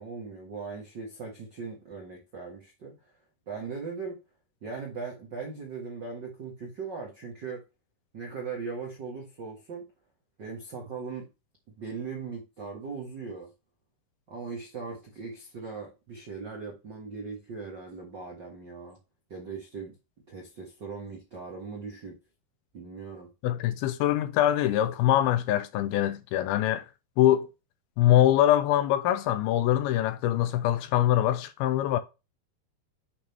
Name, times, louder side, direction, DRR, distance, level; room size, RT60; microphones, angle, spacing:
voice 1, 0.0-3.0 3.5-4.2 4.6-7.6 8.1-9.9 10.4-11.3 11.8-13.5 14.3-19.0 19.3-19.9 20.3-22.1 22.7-23.3, right 5 dB, 80° right, 1.0 m, -39 dB
voice 2, 23.4-26.9 27.2-27.5 28.0-32.0, left 12 dB, 80° left, 2.2 m, -23 dB
8.7 x 3.5 x 4.4 m
omnidirectional pair, 4.8 m